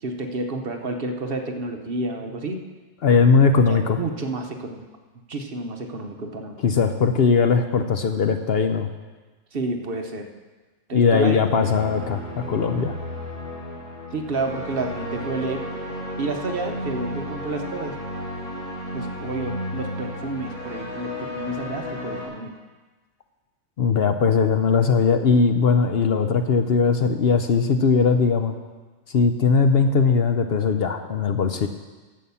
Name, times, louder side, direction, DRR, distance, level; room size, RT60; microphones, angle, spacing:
voice 1, 0.0-2.6 3.7-4.9 5.3-6.6 9.5-10.3 10.9-11.4 14.1-15.6 16.2-17.9 18.9-22.5, right 2 dB, 50° right, 4 dB, 1.1 m, -30 dB
voice 2, 3.0-4.0 6.6-8.9 10.9-12.9 23.8-28.6 29.1-31.7, left 5 dB, 60° left, 7 dB, 0.8 m, -19 dB
sound 1, 11.5-22.3, left 1 dB, 40° left, 4.3 m, -33 dB
11.0 x 7.5 x 7.0 m, 1.3 s
omnidirectional pair, 1.3 m